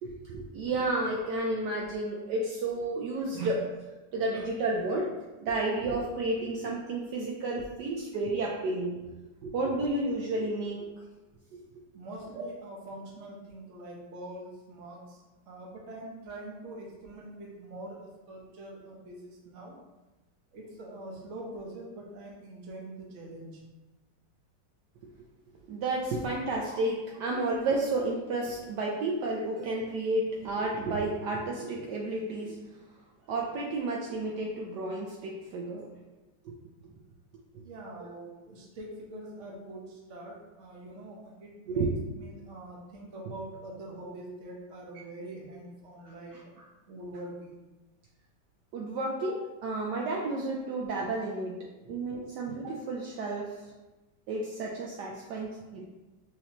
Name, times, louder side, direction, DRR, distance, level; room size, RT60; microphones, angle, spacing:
voice 1, 0.0-3.6 4.1-5.1 5.4-9.1 9.4-10.9 12.4-12.5 25.7-32.6 33.3-35.9 38.0-38.1 41.7-41.9 46.0-46.1 48.7-51.6 51.9-53.6 54.3-55.9, right 2 dB, 75° right, -2 dB, 1.1 m, -31 dB
voice 2, 11.9-19.8 20.5-23.6 37.6-41.9 42.2-46.3 46.9-47.6 51.8-52.0, right 1 dB, 50° right, -3 dB, 1.1 m, -44 dB
6.3 x 2.9 x 2.9 m, 1.1 s
omnidirectional pair, 2.0 m